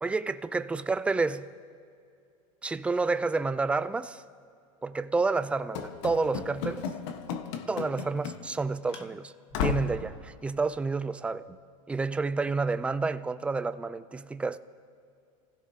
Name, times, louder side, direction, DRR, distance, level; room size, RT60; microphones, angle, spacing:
voice 1, 0.0-1.5 2.6-4.2 4.8-6.9 7.7-9.3 9.6-11.6 11.9-14.6, right 3 dB, 5° right, 0.4 m, -29 dB
Run / Slam, 5.7-8.6 8.9-9.1 9.5-10.0, left 6 dB, 65° left, 1.3 m, -34 dB
29.0 x 16.0 x 2.8 m
supercardioid pair, 135°, 17 cm